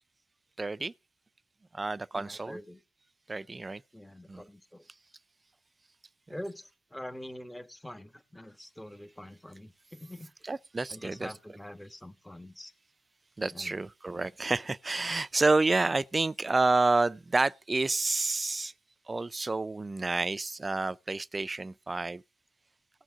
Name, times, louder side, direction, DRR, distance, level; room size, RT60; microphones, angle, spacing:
voice 1, 0.6-0.9 1.7-2.6 3.3-3.8 4.3-4.4 10.4-11.3 13.4-18.7 19.1-22.2, right 3 dB, 30° right, 0.5 m, -29 dB
voice 2, 2.1-2.8 3.9-4.8 6.3-10.3 10.9-12.7 13.5-13.8 14.1-14.3, left 1 dB, 10° left, 1.3 m, -45 dB
18.5 x 6.2 x 3.6 m
supercardioid pair, 50°, 0 cm